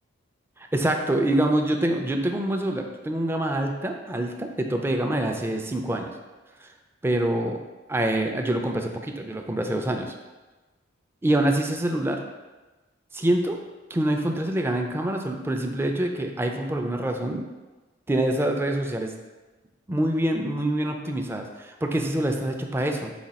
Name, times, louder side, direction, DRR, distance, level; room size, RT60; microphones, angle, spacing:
voice 1, 0.7-6.1 6.6-6.7 7.0-7.6 7.9-10.1 11.2-12.2 13.1-13.6 13.9-17.5 18.1-19.1 19.9-23.1, right 1 dB, 10° right, 3 dB, 0.3 m, -25 dB
4.9 x 2.2 x 4.1 m, 1.2 s
head